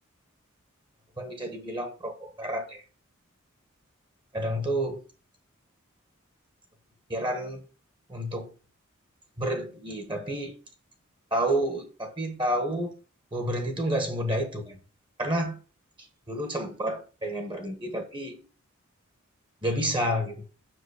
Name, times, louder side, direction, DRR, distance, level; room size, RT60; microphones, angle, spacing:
voice 1, 1.2-2.8 4.3-5.0 7.1-7.6 8.1-8.5 9.4-10.5 11.3-13.0 13.3-14.8 15.2-15.6 16.3-18.5 19.6-20.4, right 1 dB, 25° right, 1.4 m, -30 dB
7.5 x 6.3 x 4.9 m
head